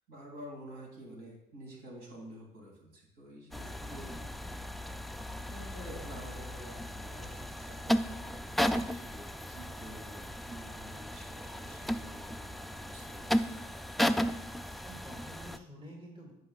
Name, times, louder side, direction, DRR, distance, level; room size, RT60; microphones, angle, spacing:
voice 1, 0.1-4.1 5.5-13.7, equal, 70° right, -2 dB, 2.8 m, -49 dB
sound 1, 3.5-15.6, equal, ahead, 0.3 m, -35 dB
voice 2, 3.8-4.3 14.8-16.3, equal, 30° right, -1 dB, 2.4 m, -50 dB
15.5 x 5.4 x 2.4 m, 0.85 s
cardioid pair, 110°, 17 cm